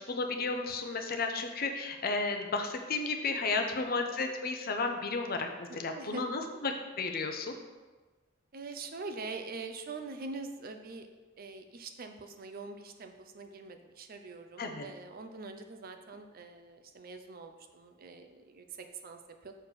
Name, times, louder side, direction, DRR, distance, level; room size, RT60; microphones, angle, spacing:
voice 1, 0.1-7.6 14.6-14.9, left 3 dB, 50° left, 5 dB, 0.7 m, -33 dB
voice 2, 5.7-6.2 8.5-11.1 11.4-19.5, right 3 dB, 50° right, 6 dB, 0.6 m, -44 dB
6.5 x 4.3 x 4.8 m, 1.2 s
head